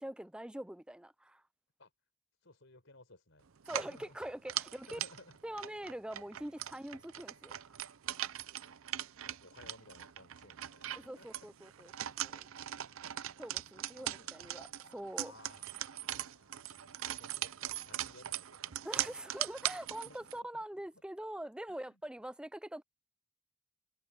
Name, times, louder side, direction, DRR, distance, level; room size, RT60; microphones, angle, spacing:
voice 1, 0.0-1.4 3.7-5.0 5.4-7.8 10.9-11.9 12.2-12.5 13.4-15.3 18.8-22.8, right 1 dB, 5° right, 0.4 m, -44 dB
voice 2, 2.4-3.5 3.8-4.2 4.7-5.4 8.2-8.3 8.6-8.8 9.1-11.3 11.8-11.9 12.9-14.7 15.2-19.2 20.0-20.7 21.7-22.0, left 2 dB, 65° left, 4.4 m, -60 dB
sound 1, 3.6-20.4, right 12 dB, 75° right, 0.6 m, -41 dB
head